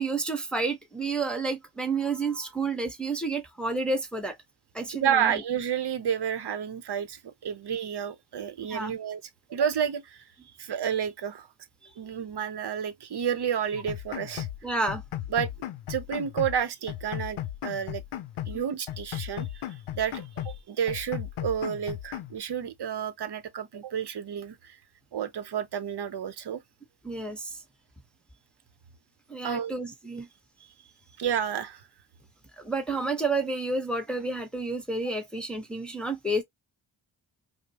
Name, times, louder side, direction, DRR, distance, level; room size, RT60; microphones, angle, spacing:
voice 1, 0.0-4.3 4.7-5.3 8.7-8.9 11.8-11.9 14.6-15.0 27.0-27.5 29.3-30.3 32.6-36.4, right 3 dB, ahead, 1.0 m, -30 dB
voice 2, 5.0-9.2 9.5-10.2 10.6-11.5 12.0-14.5 15.3-15.5 15.9-18.0 18.5-24.8 25.1-26.6 29.4-29.7 31.2-31.8, right 8 dB, 55° right, 0.8 m, -30 dB
sound 1, 13.7-14.6 14.9-16.6 16.9-18.6 18.9-20.6 20.9-22.4, left 12 dB, 90° left, 0.6 m, -36 dB
5.0 x 2.1 x 2.8 m
cardioid pair, 60°, 48 cm